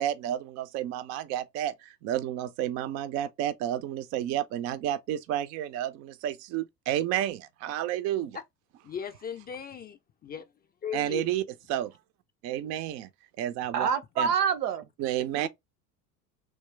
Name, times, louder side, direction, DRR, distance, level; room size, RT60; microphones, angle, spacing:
voice 1, 0.0-8.4 10.9-11.4 11.7-11.9 12.4-13.1 13.4-13.9 14.2-14.3 15.0-15.5, right 12 dB, 35° right, 0.4 m, -31 dB
voice 2, 8.8-10.4 10.8-11.3, left 7 dB, 20° left, 0.5 m, -37 dB
voice 3, 13.7-14.9 15.3-15.5, right 7 dB, 75° right, 0.8 m, -27 dB
3.3 x 3.0 x 3.2 m
figure-of-eight pair, 75°, 48 cm